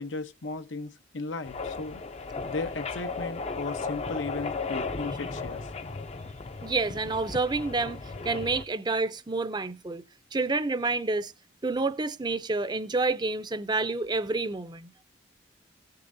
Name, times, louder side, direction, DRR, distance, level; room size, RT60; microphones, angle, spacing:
voice 1, 0.0-2.0 2.4-5.7, left 3 dB, 85° left, 0.9 m, -36 dB
sound 1, 1.4-8.6, left 4 dB, 35° left, 0.6 m, -35 dB
voice 2, 6.6-10.0 10.3-11.3 11.6-14.9, right 3 dB, 25° right, 0.5 m, -29 dB
17.0 x 6.7 x 2.6 m
head